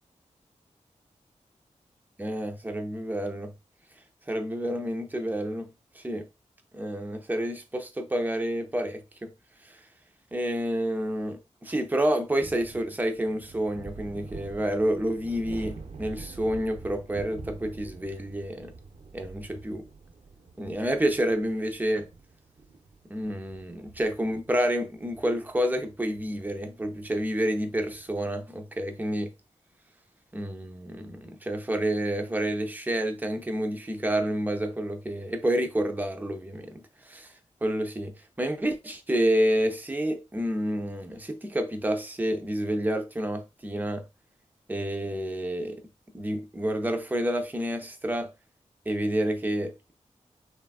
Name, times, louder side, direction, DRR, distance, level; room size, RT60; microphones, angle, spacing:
voice 1, 2.2-3.5 4.3-5.7 5.9-6.3 6.7-9.3 9.7-9.8 10.3-18.7 19.1-19.9 20.6-22.1 23.0-29.3 30.3-37.3 37.6-44.1 44.7-45.8 46.1-48.3 48.9-49.9, right 1 dB, 15° right, 0.5 m, -29 dB
sound 1, 12.4-28.2, right 4 dB, 60° right, 0.6 m, -47 dB
3.3 x 2.3 x 2.3 m
wide cardioid pair, 100°, 13 cm